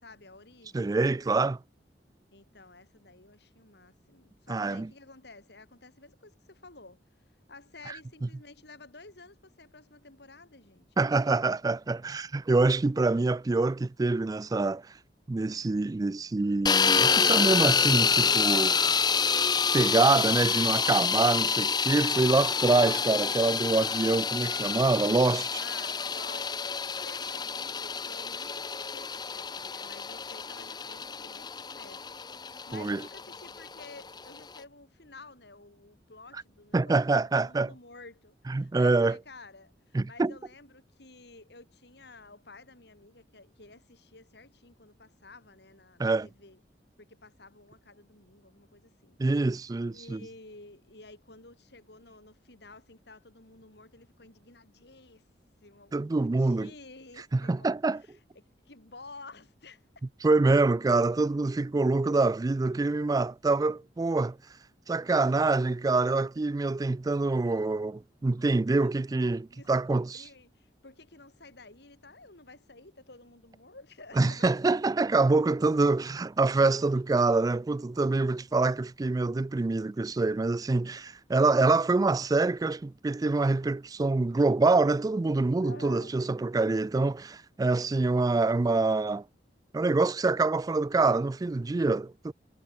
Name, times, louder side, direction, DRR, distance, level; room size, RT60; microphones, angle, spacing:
voice 1, 0.0-1.0 2.3-7.0 7.5-11.4 21.2-21.6 25.5-37.0 37.3-46.6 47.0-49.2 49.9-55.2 55.6-60.0 68.7-68.9 69.5-74.5 85.6-86.2, left 3 dB, 65° left, 4.6 m, -52 dB
voice 2, 0.7-1.6 4.5-4.9 7.9-8.0 11.0-14.9 15.3-18.8 19.7-25.6 32.7-33.0 36.7-37.7 38.5-39.2 39.9-40.3 46.0-46.3 49.2-50.2 55.9-56.7 57.3-58.0 60.2-64.4 64.9-70.2 74.2-89.2 89.7-92.3, right 3 dB, 20° right, 0.3 m, -25 dB
sound 1, 16.7-34.6, left 6 dB, 25° left, 0.7 m, -28 dB
head